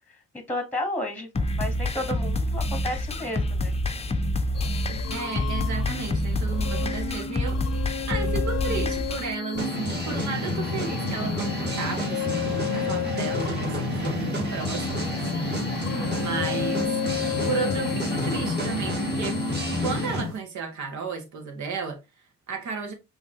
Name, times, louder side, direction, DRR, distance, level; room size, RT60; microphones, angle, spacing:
voice 1, 0.5-1.3 1.6-3.8, left 1 dB, 5° left, 1.2 m, -32 dB
sound 1, 1.3-9.3, left 1 dB, 20° left, 0.6 m, -27 dB
sound 2, 4.5-20.1, left 8 dB, 55° left, 0.7 m, -34 dB
voice 2, 4.9-7.7 8.1-17.0 17.4-19.4 19.8-22.9, right 5 dB, 70° right, 1.7 m, -34 dB
sound 3, 9.6-20.3, left 1 dB, 35° right, 2.3 m, -29 dB
5.5 x 3.2 x 2.8 m
cardioid pair, 90°, 30 cm